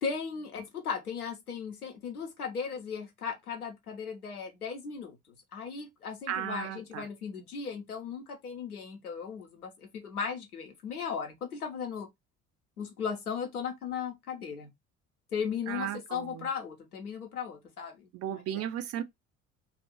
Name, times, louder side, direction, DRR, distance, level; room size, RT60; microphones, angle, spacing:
voice 1, 0.0-5.2 5.5-12.1 12.8-14.7 15.3-18.1, left 6 dB, 80° left, 1.0 m, -37 dB
voice 2, 6.3-7.1 15.7-16.5 18.1-19.0, right 11 dB, 35° right, 0.5 m, -35 dB
3.0 x 2.5 x 2.9 m
figure-of-eight pair, 60°, 44 cm